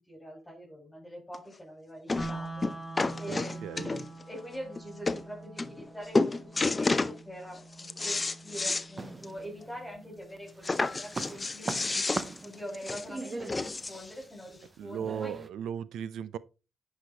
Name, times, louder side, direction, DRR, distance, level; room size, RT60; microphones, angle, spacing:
voice 1, 0.0-2.7 3.2-12.0 12.4-15.4, equal, 10° left, 4.6 m, -44 dB
sound 1, 1.3-1.4 2.1-2.3 2.6-4.2 4.8-4.9 5.1-5.2 5.6-5.9 6.1-7.2 7.6-8.9 9.2-9.3 9.6-9.7 10.6-14.1 14.9-15.0, left 3 dB, 30° left, 0.7 m, -30 dB
sound 2, 2.2-12.2, right 2 dB, 10° right, 2.3 m, -45 dB
voice 2, 3.3-4.1 14.8-16.4, right 8 dB, 80° right, 0.5 m, -37 dB
sound 3, 9.0-10.0 10.4-15.5, right 3 dB, 35° right, 0.8 m, -40 dB
10.0 x 5.1 x 4.0 m
cardioid pair, 65°, 0 cm